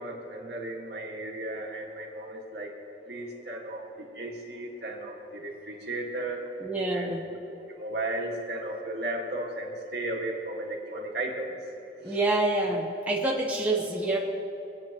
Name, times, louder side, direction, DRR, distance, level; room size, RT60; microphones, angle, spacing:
voice 1, 0.0-2.7 3.1-6.6 6.9-7.1 7.7-11.5 12.0-12.2, right 1 dB, 70° right, -1 dB, 1.8 m, -35 dB
voice 2, 6.6-7.3 12.0-14.2, right 2 dB, 10° right, -3 dB, 1.0 m, -27 dB
22.5 x 9.4 x 3.0 m, 2.9 s
head